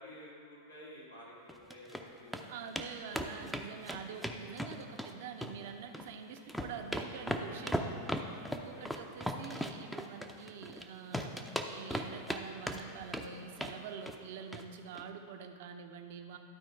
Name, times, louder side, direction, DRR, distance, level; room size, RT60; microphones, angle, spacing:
voice 1, 0.0-2.6 3.1-3.2 4.1-4.3 8.6-8.9, left 1 dB, 85° left, -6 dB, 2.1 m, -52 dB
sound 1, 1.5-2.0 2.3-2.4 2.8-2.9 3.1-5.1 5.4-6.1 6.4-10.8 11.1-12.4 12.7-13.3 13.6-13.8 14.1-14.2 14.5-14.6 14.9-15.0, equal, ahead, 0.5 m, -37 dB
voice 2, 2.5-7.9 8.5-16.4, right 6 dB, 55° right, 6 dB, 0.6 m, -46 dB
11.5 x 4.4 x 4.5 m, 2.3 s
figure-of-eight pair, 90°, 0 cm